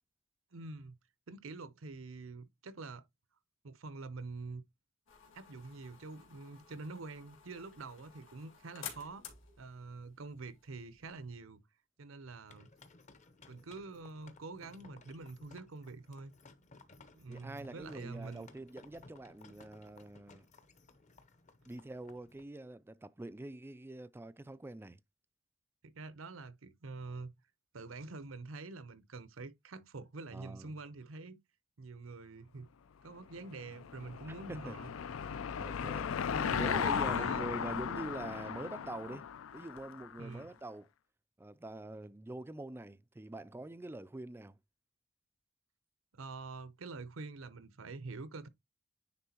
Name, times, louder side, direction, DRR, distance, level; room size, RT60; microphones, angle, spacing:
voice 1, 0.5-1.0 1.3-3.0 3.6-4.6 5.3-9.2 9.6-11.6 12.0-12.7 13.5-16.3 17.2-18.5 25.8-27.3 27.7-31.4 31.8-32.7 33.0-34.9 36.3-37.4 40.2-40.5 46.1-48.5, right 3 dB, 90° right, 0.8 m, -46 dB
sound 1, 5.1-11.4, left 8 dB, 65° left, 2.2 m, -53 dB
SE Horse & wagon with lots of wooden & metal rattle, 12.5-22.4, left 3 dB, 35° left, 0.8 m, -59 dB
voice 2, 17.3-20.5 21.6-25.0 30.3-30.7 34.3-34.8 35.6-36.1 36.5-39.3 39.5-40.9 41.4-44.6, right 2 dB, 10° right, 0.3 m, -45 dB
Car passing by / Engine, 33.4-40.2, left 7 dB, 80° left, 0.4 m, -36 dB
9.7 x 3.8 x 2.9 m
head